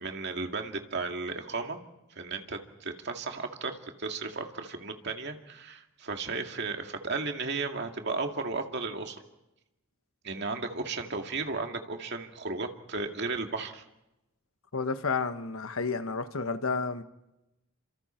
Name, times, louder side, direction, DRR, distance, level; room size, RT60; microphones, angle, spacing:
voice 1, 0.0-1.8 2.2-9.2 10.2-13.8, right 3 dB, 55° right, 4 dB, 2.2 m, -34 dB
voice 2, 14.7-17.0, left 4 dB, 80° left, 10 dB, 1.3 m, -31 dB
30.0 x 26.5 x 4.5 m, 0.94 s
head